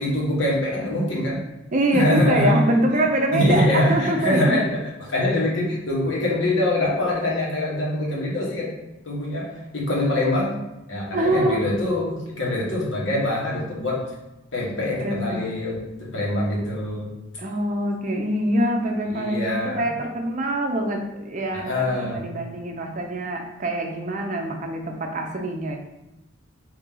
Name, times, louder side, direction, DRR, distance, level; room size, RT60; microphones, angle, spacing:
voice 1, 0.0-1.4 1.9-2.7 2.9-3.1 3.3-8.7 9.0-10.5 10.9-14.0 14.5-17.1 19.1-19.9 21.5-22.2, left 1 dB, 75° left, -4 dB, 1.3 m, -24 dB
voice 2, 1.7-4.6 11.1-11.6 15.0-15.5 17.4-25.8, right 1 dB, 40° right, 3 dB, 0.6 m, -24 dB
4.3 x 2.8 x 3.8 m, 0.92 s
head